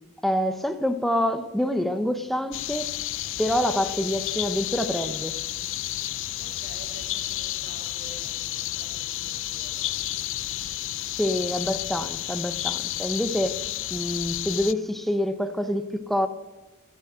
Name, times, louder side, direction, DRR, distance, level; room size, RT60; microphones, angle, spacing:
voice 1, 0.2-2.9 3.4-5.4 11.1-13.6 13.9-16.3, equal, ahead, 9 dB, 0.7 m, -26 dB
sound 1, 2.5-14.7, left 14 dB, 60° left, 0.4 m, -31 dB
voice 2, 6.4-9.9 12.0-12.1, right 3 dB, 45° right, 0 dB, 3.0 m, -49 dB
16.5 x 7.3 x 9.0 m, 1.1 s
head